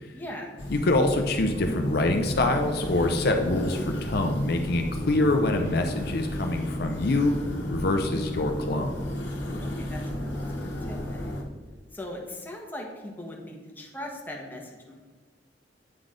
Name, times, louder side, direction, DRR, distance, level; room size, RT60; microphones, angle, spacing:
voice 1, 0.1-0.6 9.6-11.3 11.9-14.9, left 1 dB, 10° left, -1 dB, 1.2 m, -40 dB
sound 1, 0.6-11.4, left 1 dB, 85° left, 1.2 m, -33 dB
voice 2, 0.7-7.3 7.7-8.9, left 2 dB, 60° left, 4 dB, 0.6 m, -25 dB
8.7 x 4.0 x 5.0 m, 1.4 s
head